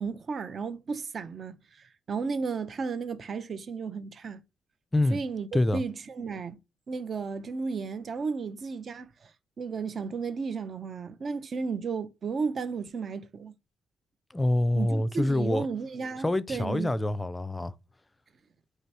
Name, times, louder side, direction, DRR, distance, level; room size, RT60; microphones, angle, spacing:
voice 1, 0.0-4.4 5.1-6.6 6.9-9.3 9.6-13.5 14.8-16.9, right 5 dB, 45° right, 0.5 m, -34 dB
voice 2, 14.3-15.7 16.2-17.7, left 1 dB, 15° left, 0.4 m, -26 dB
3.2 x 2.8 x 4.6 m
cardioid pair, 90°, 0 cm